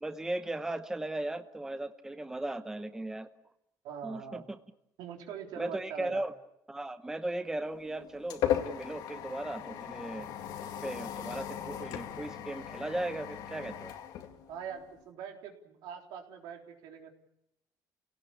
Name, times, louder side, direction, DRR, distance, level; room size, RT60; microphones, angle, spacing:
voice 1, 0.0-3.3 4.0-4.6 5.6-6.3 6.7-10.3 10.6-13.9, right 1 dB, 10° right, 10 dB, 0.9 m, -37 dB
voice 2, 3.8-4.4 5.0-6.2 14.5-17.1, right 8 dB, 85° right, 2 dB, 3.8 m, -43 dB
sound 1, 7.6-15.0, left 10 dB, 75° left, 2.2 m, -37 dB
29.0 x 18.0 x 8.4 m, 0.84 s
cardioid pair, 135°, 7 cm